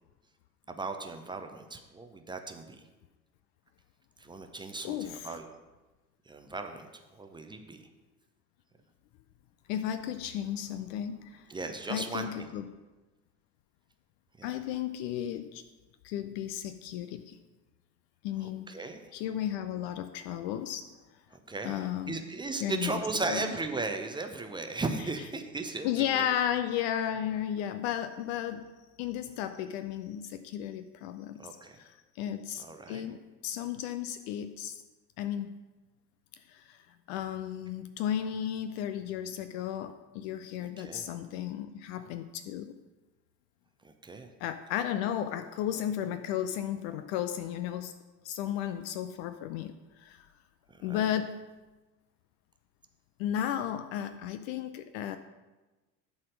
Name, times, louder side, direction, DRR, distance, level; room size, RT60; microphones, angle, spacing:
voice 1, 0.7-2.8 4.2-5.5 6.3-7.8 11.5-12.5 14.4-14.5 18.4-19.0 21.3-26.3 31.4-31.8 32.6-33.0 40.8-41.1 43.8-44.3 50.7-51.1, right 3 dB, 10° right, 5 dB, 0.6 m, -37 dB
voice 2, 4.8-5.4 9.7-11.5 11.9-12.6 14.4-15.6 16.0-17.4 18.2-18.7 19.1-20.9 21.6-22.2 22.6-23.0 23.3-23.4 25.8-28.7 29.0-31.5 31.8-34.8 35.2-35.6 36.5-36.8 37.1-42.8 44.4-47.9 48.2-50.3 50.8-51.5 53.2-55.2, left 10 dB, 40° left, 10 dB, 0.5 m, -34 dB
11.0 x 4.2 x 6.4 m, 1.2 s
figure-of-eight pair, 70°, 48 cm